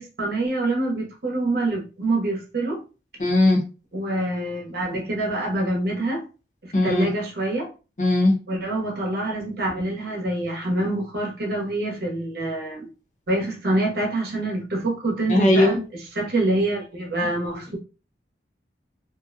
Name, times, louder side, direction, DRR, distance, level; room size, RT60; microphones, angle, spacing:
voice 1, 0.0-2.8 3.9-6.3 6.6-7.7 8.5-12.9 13.3-15.8 16.1-17.8, right 2 dB, 60° right, 0 dB, 0.8 m, -26 dB
voice 2, 3.2-3.6 6.7-7.1 8.0-8.4 15.3-15.8, left 1 dB, 45° left, 0 dB, 0.7 m, -18 dB
2.5 x 2.1 x 2.4 m, 0.32 s
head